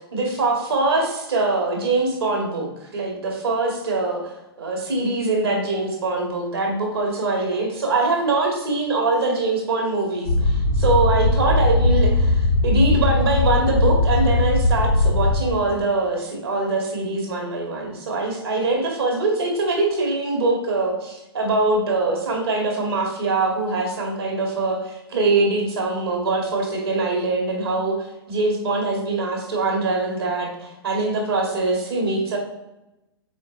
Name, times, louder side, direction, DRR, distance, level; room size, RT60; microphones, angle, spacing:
voice 1, 0.1-2.7 2.9-4.2 4.6-32.4, right 2 dB, 70° right, 0 dB, 2.2 m, -23 dB
sound 1, 10.3-15.4, left 2 dB, 80° left, 1.5 m, -19 dB
7.4 x 4.2 x 3.2 m, 0.93 s
figure-of-eight pair, 110°, 13 cm